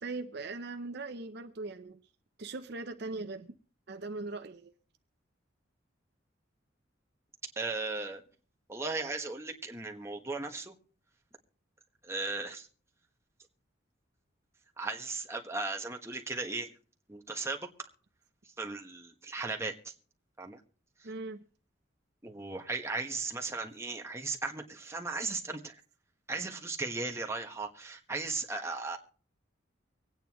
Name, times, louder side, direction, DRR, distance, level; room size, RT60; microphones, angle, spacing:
voice 1, 0.0-2.0 2.4-3.5 3.9-4.7 21.0-21.4, right 3 dB, 55° right, 0.7 m, -40 dB
voice 2, 7.5-8.2 8.7-10.7 12.0-12.7 14.8-16.7 17.1-17.7 18.6-19.9 20.4-20.6 21.0-21.1 22.2-25.7 26.3-29.0, right 3 dB, 15° right, 1.3 m, -36 dB
25.0 x 9.1 x 3.0 m
head